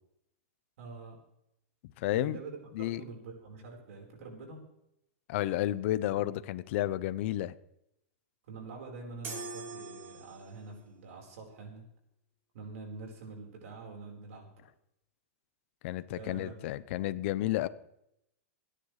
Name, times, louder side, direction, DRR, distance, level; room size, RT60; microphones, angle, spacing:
voice 1, 0.8-1.2 2.1-4.6 8.5-11.9 12.5-14.5 16.1-16.6, right 4 dB, 70° right, 1 dB, 4.2 m, -45 dB
voice 2, 2.0-2.4 2.7-3.0 5.3-7.5 15.8-17.7, left 14 dB, 55° left, 16 dB, 0.7 m, -31 dB
sound 1, 9.2-10.7, right 3 dB, 30° right, 3.5 m, -43 dB
27.0 x 10.0 x 3.2 m, 0.80 s
hypercardioid pair, 140°, 8 cm